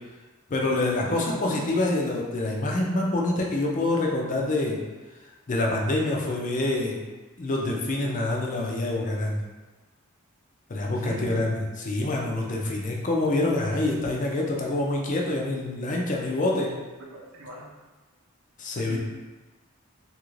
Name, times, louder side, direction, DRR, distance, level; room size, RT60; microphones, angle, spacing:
voice 1, 0.5-4.8 5.5-7.0 7.4-9.4 10.7-16.7 18.6-19.0, left 2 dB, 40° left, -1 dB, 0.5 m, -26 dB
voice 2, 1.1-1.4 10.8-11.5 17.1-17.7 18.8-19.0, right 1 dB, 75° right, -3 dB, 0.7 m, -38 dB
2.9 x 2.4 x 3.1 m, 1.2 s
head